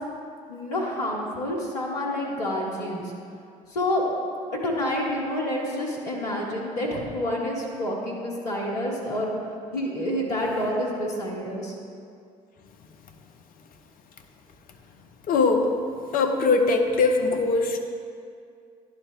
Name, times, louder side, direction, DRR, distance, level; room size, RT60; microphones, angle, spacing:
voice 1, 0.5-3.0 3.7-4.0 4.5-9.3 9.7-11.7, left 1 dB, 75° left, -3 dB, 1.1 m, -28 dB
voice 2, 15.3-15.7 16.1-17.8, left 3 dB, 50° left, 5 dB, 0.8 m, -21 dB
11.0 x 3.8 x 3.6 m, 2.3 s
figure-of-eight pair, 50°, 19 cm